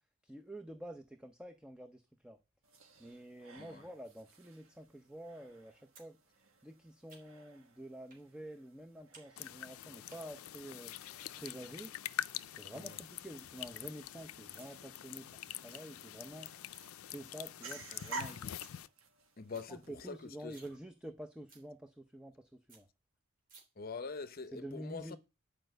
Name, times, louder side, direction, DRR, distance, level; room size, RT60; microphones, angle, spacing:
voice 1, 0.2-2.4 3.0-6.2 6.6-10.9 11.3-11.9 12.5-16.5 17.0-18.5 19.7-22.9 24.5-25.2, right 1 dB, 5° right, 0.6 m, -49 dB
sound 1, 2.6-20.8, right 3 dB, 75° right, 1.9 m, -54 dB
sound 2, 5.9-6.1 6.4-7.5 8.1-8.3 8.6-9.3 9.5-10.2 11.2-11.6 12.0-12.1 12.4-12.5 12.7-12.9 13.2-13.7 14.3-14.7 15.2-15.3 15.5-15.8 16.2-16.9 17.3-17.4 17.7-17.8 18.2-18.3 18.4-18.8 19.1-19.2 19.4-19.7 20.0-20.1 20.4-20.7 21.1-21.2 21.5-21.7 22.1-22.2 22.4-22.5 22.7-22.8 23.5-23.6, right 4 dB, 40° right, 3.0 m, -59 dB
sound 3, 9.4-18.9, left 11 dB, 90° left, 0.4 m, -45 dB
voice 2, 19.4-20.6 23.8-25.2, left 4 dB, 45° left, 0.7 m, -44 dB
10.0 x 5.1 x 7.7 m
head